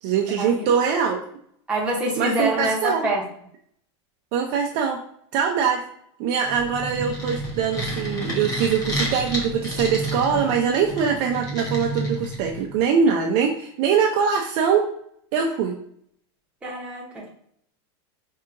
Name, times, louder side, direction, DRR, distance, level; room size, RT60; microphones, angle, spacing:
voice 1, 0.0-1.2 2.2-3.1 4.3-5.0 5.3-5.8 6.2-14.9 15.3-15.8, right 6 dB, 40° right, 1 dB, 0.4 m, -22 dB
voice 2, 1.7-3.2 16.6-17.3, right 1 dB, 5° right, -4 dB, 0.8 m, -26 dB
sound 1, 6.5-12.8, right 1 dB, 25° left, 0.8 m, -30 dB
4.6 x 2.8 x 2.5 m, 0.67 s
supercardioid pair, 170°, 15 cm